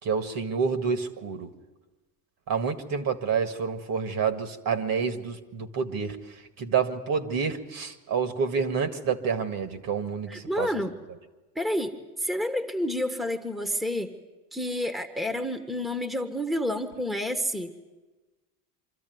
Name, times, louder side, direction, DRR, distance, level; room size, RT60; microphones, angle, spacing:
voice 1, 0.0-1.5 2.5-10.7, right 6 dB, 50° right, 9 dB, 1.9 m, -28 dB
voice 2, 10.3-10.9 11.5-14.1 14.5-17.7, left 1 dB, ahead, 9 dB, 1.3 m, -29 dB
25.0 x 13.5 x 9.3 m, 1.2 s
supercardioid pair, 100°, 45 cm